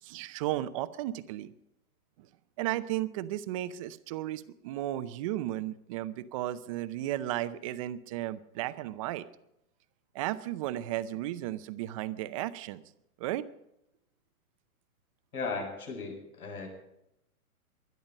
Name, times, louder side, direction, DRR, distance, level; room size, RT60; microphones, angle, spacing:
voice 1, 0.0-1.5 2.2-2.3 2.6-9.2 10.1-12.8 13.2-13.4, right 14 dB, 25° right, 13 dB, 0.6 m, -34 dB
voice 2, 15.3-16.7, left 4 dB, 85° left, 2 dB, 7.9 m, -36 dB
20.5 x 12.0 x 5.3 m, 0.83 s
hypercardioid pair, 140°, 43 cm